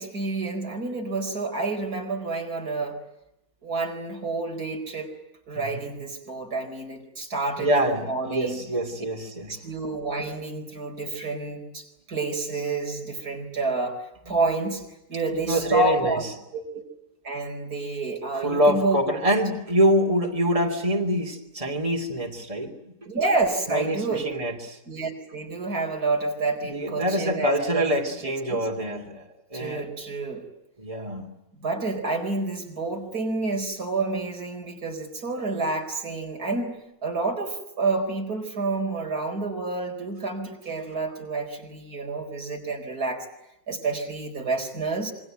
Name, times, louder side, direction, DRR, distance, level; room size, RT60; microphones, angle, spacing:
voice 1, 0.0-3.0 3.6-5.1 5.5-8.6 9.5-14.8 15.1-16.2 16.5-16.8 17.2-19.0 23.1-24.3 24.9-28.7 29.5-30.4 31.6-36.8 37.0-43.3 43.7-45.1, right 3 dB, 90° right, 3 dB, 5.1 m, -29 dB
voice 2, 7.6-9.6 15.3-16.2 18.3-22.7 23.7-24.8 26.7-29.9 30.8-31.3, right 1 dB, 20° right, 1 dB, 3.2 m, -25 dB
27.0 x 24.0 x 9.2 m, 0.87 s
omnidirectional pair, 1.6 m